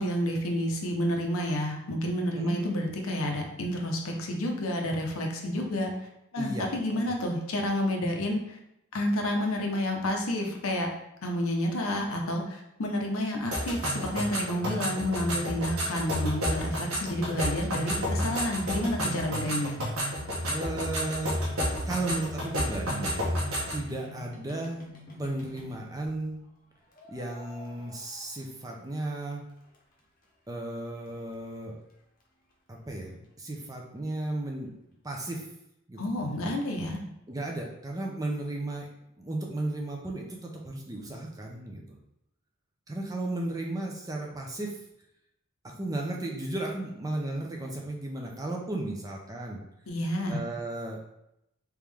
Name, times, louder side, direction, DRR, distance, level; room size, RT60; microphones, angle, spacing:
voice 1, 0.0-5.9 6.3-8.6 8.9-10.9 11.2-19.8 36.0-37.0 49.9-50.4, left 1 dB, 75° left, 2 dB, 0.7 m, -30 dB
voice 2, 6.4-6.7 7.1-7.2 20.5-21.4 21.8-23.2 23.7-24.9 25.2-26.4 27.1-29.4 30.5-31.8 32.7-34.7 35.0-35.5 35.9-36.0 37.3-38.9 39.2-42.0 42.9-44.8 45.6-49.6 50.3-51.0, right 2 dB, 15° right, 0 dB, 0.5 m, -34 dB
sound 1, 13.5-23.8, equal, 75° right, 1.1 m, -31 dB
sound 2, 15.8-26.1 26.9-29.0 29.3-30.2 30.8-30.9 31.1-31.2 31.3-31.4 31.9-32.0 32.2-32.3, left 2 dB, 40° left, 0.8 m, -48 dB
3.5 x 3.0 x 3.4 m, 0.83 s
head